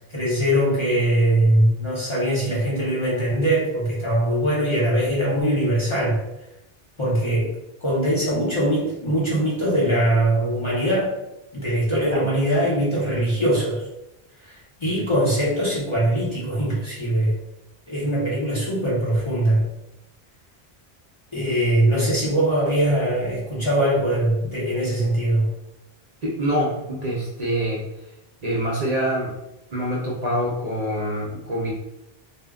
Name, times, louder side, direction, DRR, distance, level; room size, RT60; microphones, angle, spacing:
voice 1, 0.1-6.2 7.0-7.5 7.8-11.1 11.5-13.8 14.4-14.5 14.8-17.3 17.9-19.6 21.3-25.5, right 1 dB, 35° left, -7 dB, 0.7 m, -21 dB
voice 2, 26.2-27.8 28.4-29.3 29.7-31.7, equal, 50° right, -5 dB, 0.6 m, -25 dB
2.1 x 2.1 x 3.5 m, 0.90 s
omnidirectional pair, 1.1 m